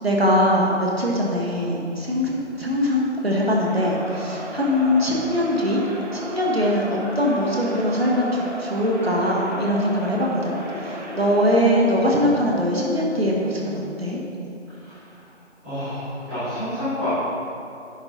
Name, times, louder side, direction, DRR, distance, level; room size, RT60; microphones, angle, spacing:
voice 1, 0.0-5.8 6.1-6.9 7.1-14.2, equal, 55° right, -3 dB, 1.6 m, -22 dB
Crowd, 3.6-11.7, equal, 35° right, 1.2 m, -35 dB
voice 2, 14.8-15.2 15.6-17.1, left 1 dB, 5° left, -25 dB, 1.5 m, -29 dB
10.5 x 5.5 x 4.1 m, 2.7 s
figure-of-eight pair, 165°, 36 cm